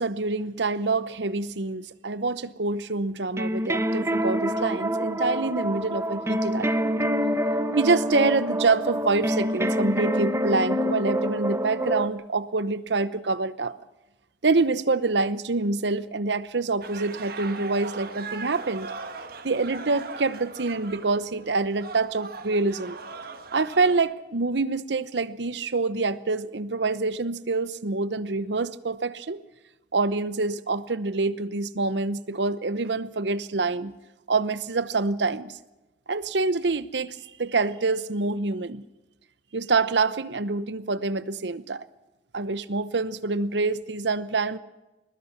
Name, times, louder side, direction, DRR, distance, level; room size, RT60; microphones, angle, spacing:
voice 1, 0.0-6.9 7.8-13.8 14.4-18.9 19.4-23.0 23.5-29.4 29.9-33.9 34.3-35.6 36.1-38.8 39.5-41.8 42.3-44.6, right 3 dB, 75° right, 15 dB, 0.9 m, -26 dB
sound 1, 3.4-12.1, equal, 15° right, 1.0 m, -26 dB
sound 2, 16.8-24.0, right 4 dB, 55° right, 1.7 m, -39 dB
21.0 x 20.5 x 6.0 m, 1.1 s
head